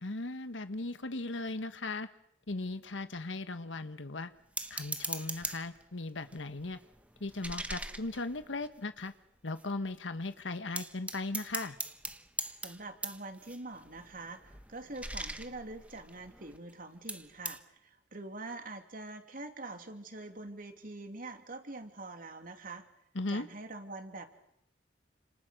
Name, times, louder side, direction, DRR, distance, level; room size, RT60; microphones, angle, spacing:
voice 1, 0.0-2.1 2.5-4.3 4.7-6.8 7.2-9.1 9.4-11.8 23.1-23.5, left 2 dB, 90° left, 10 dB, 1.3 m, -37 dB
sound 1, 4.6-5.8 6.3-9.1 9.6-9.7 9.9-10.3 10.8-16.7 17.1-17.6, right 2 dB, 10° right, 1.3 m, -41 dB
voice 2, 12.6-22.9 23.3-24.3, right 2 dB, 50° right, 6 dB, 3.1 m, -44 dB
30.0 x 27.5 x 6.5 m, 0.77 s
head